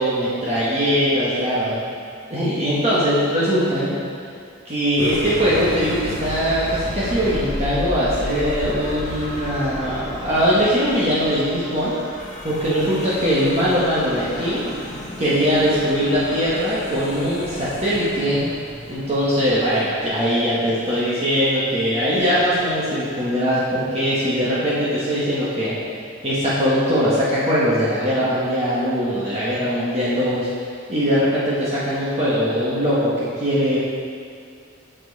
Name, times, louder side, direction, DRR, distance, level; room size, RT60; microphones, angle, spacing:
voice 1, 0.0-1.8 2.3-4.0 4.6-11.9 12.4-14.7 15.2-18.5 18.9-25.8 26.2-30.5 30.9-33.8, equal, 35° right, -9 dB, 1.5 m, -21 dB
sound 1, 5.0-21.3 22.1-23.3, left 1 dB, 35° left, 0.9 m, -33 dB
8.1 x 6.2 x 4.7 m, 2.3 s
head